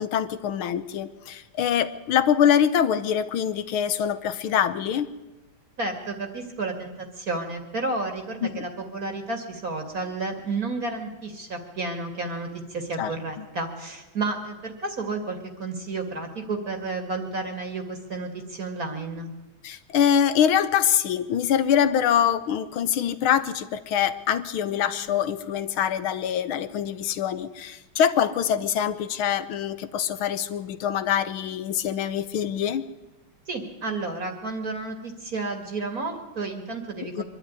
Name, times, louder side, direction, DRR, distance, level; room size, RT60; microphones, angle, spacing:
voice 1, 0.0-5.1 8.4-8.6 13.0-13.5 19.6-32.8 37.2-37.3, left 9 dB, 90° left, 13 dB, 1.8 m, -24 dB
voice 2, 5.8-19.3 33.5-37.2, right 3 dB, 45° right, 5 dB, 2.5 m, -31 dB
24.0 x 12.0 x 9.8 m, 1.1 s
omnidirectional pair, 2.3 m